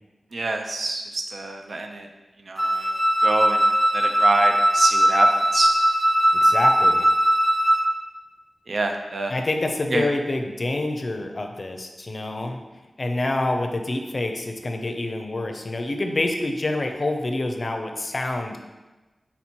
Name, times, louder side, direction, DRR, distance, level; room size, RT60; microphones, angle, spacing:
voice 1, 0.3-2.1 2.5-2.9 3.2-5.7 8.7-9.3 9.9-10.0, right 2 dB, 70° right, 4 dB, 0.5 m, -27 dB
Wind instrument woodwind instrument, 2.6-7.9, right 1 dB, 10° right, 0.6 m, -19 dB
voice 2, 6.3-7.1 9.3-12.6 13.0-18.6, left 2 dB, 50° left, 4 dB, 0.5 m, -27 dB
4.1 x 2.9 x 4.3 m, 1.2 s
wide cardioid pair, 65°, 0 cm